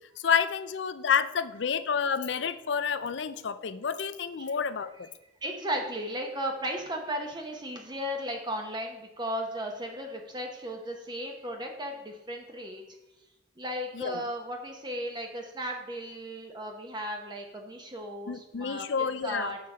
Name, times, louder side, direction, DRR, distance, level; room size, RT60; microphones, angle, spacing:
voice 1, 0.2-5.1 13.9-14.2 18.3-19.5, left 6 dB, 70° left, 13 dB, 0.5 m, -29 dB
voice 2, 5.4-12.8 13.6-19.6, equal, 25° right, 2 dB, 0.9 m, -35 dB
7.5 x 5.8 x 4.9 m, 0.97 s
head